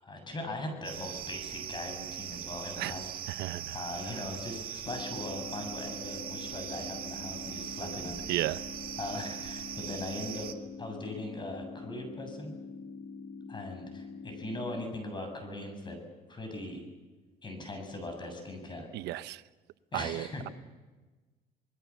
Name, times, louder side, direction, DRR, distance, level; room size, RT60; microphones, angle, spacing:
voice 1, 0.0-3.1 3.4-8.5 9.0-10.5 10.8-12.5 13.5-16.0 16.3-16.8 17.4-18.9 19.9-20.5, left 2 dB, 25° left, 5 dB, 7.4 m, -40 dB
sound 1, 0.8-10.5, right 10 dB, 60° right, 2.0 m, -41 dB
voice 2, 3.3-3.7 8.3-8.6 18.9-19.4 19.9-20.5, right 16 dB, 80° right, 14 dB, 0.8 m, -33 dB
sound 2, 4.9-14.9, left 4 dB, 45° left, 1.4 m, -45 dB
27.5 x 20.5 x 7.2 m, 1.3 s
cardioid pair, 110°, 17 cm